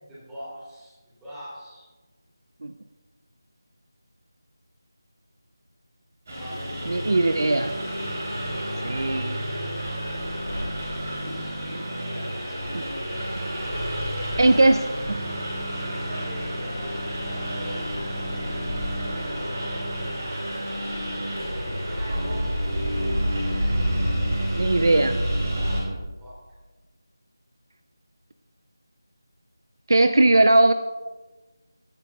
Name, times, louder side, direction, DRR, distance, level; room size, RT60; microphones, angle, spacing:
voice 1, 0.0-1.8 6.3-7.5 11.1-12.6 13.9-14.8 15.7-18.9 21.4-22.6 24.9-25.0 25.4-25.9 26.2-26.4, equal, 5° right, -11 dB, 3.1 m, -42 dB
Engine, 6.3-25.8, equal, 40° right, 3.4 m, -29 dB
voice 2, 6.9-7.7 8.8-9.4 12.7-12.9 14.4-14.8 24.6-25.2 29.9-30.7, right 2 dB, 60° right, 9 dB, 0.5 m, -19 dB
15.5 x 9.7 x 2.4 m, 1.2 s
figure-of-eight pair, 170°, 2 cm